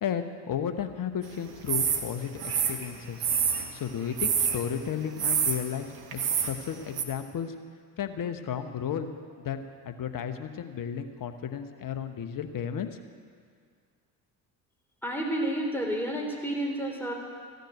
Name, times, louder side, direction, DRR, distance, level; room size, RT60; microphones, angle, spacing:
voice 1, 0.0-3.2 3.7-5.8 6.1-7.5 8.0-9.1 9.4-12.9, left 8 dB, 45° left, 8 dB, 1.2 m, -33 dB
sound 1, 1.7-2.0 2.4-3.7 4.2-4.6 5.2-5.6 6.1-6.5 7.0-7.1, right 7 dB, 50° right, 1.5 m, -26 dB
voice 2, 15.0-17.1, right 1 dB, 5° left, -1 dB, 3.7 m, -30 dB
14.5 x 6.7 x 9.2 m, 2.1 s
hypercardioid pair, 55°, 47 cm